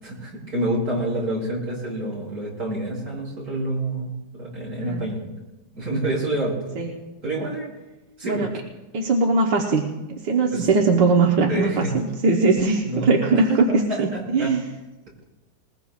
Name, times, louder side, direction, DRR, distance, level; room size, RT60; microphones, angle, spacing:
voice 1, 0.0-5.2 5.7-6.8 7.2-7.7 8.2-8.5 10.5-10.6 11.5-11.9 12.8-14.5, right 1 dB, 55° right, -5 dB, 7.2 m, -28 dB
voice 2, 6.8-7.1 8.2-8.5 8.9-9.9 10.2-14.6, right 4 dB, 85° right, 1 dB, 1.8 m, -20 dB
21.0 x 20.5 x 2.4 m, 1.1 s
omnidirectional pair, 1.9 m